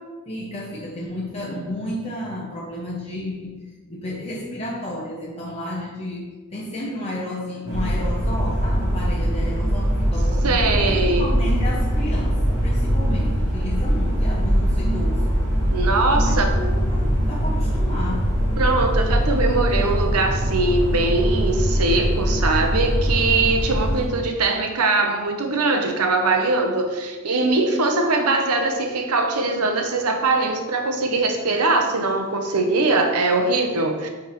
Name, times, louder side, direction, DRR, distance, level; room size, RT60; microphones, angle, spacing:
voice 1, 0.3-15.2 16.2-18.3, left 1 dB, 25° left, -5 dB, 0.7 m, -32 dB
sound 1, 7.6-24.0, equal, 15° right, 1.7 m, -22 dB
voice 2, 10.4-11.3 15.7-16.5 18.6-34.1, right 3 dB, 90° right, 4 dB, 0.8 m, -21 dB
9.4 x 3.5 x 3.1 m, 1.3 s
head